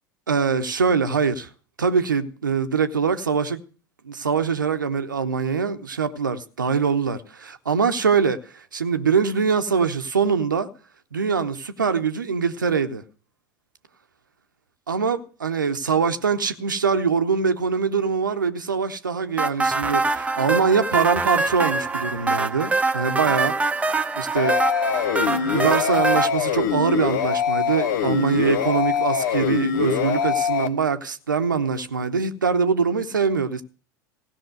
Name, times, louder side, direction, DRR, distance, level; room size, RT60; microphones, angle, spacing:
voice 1, 0.3-1.5 1.8-3.6 4.0-10.7 11.1-13.0 14.9-23.6 24.2-24.6 25.3-33.6, right 5 dB, 80° right, 0.9 m, -23 dB
sound 1, 19.4-26.3, right 3 dB, 15° right, 0.8 m, -24 dB
sound 2, 24.4-30.7, left 7 dB, 65° left, 0.9 m, -23 dB
16.5 x 5.9 x 7.7 m
figure-of-eight pair, 75°, 10 cm